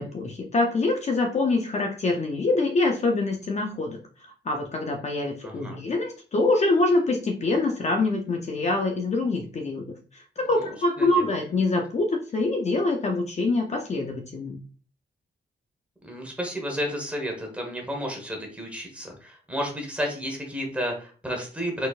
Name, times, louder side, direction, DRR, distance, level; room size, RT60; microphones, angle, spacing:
voice 1, 0.0-4.0 4.4-14.6, left 2 dB, 40° left, 2 dB, 0.6 m, -25 dB
voice 2, 5.4-5.8 11.0-11.3 16.0-21.9, equal, 5° right, 1 dB, 1.2 m, -32 dB
4.3 x 4.1 x 2.4 m, 0.38 s
wide cardioid pair, 165°, 18 cm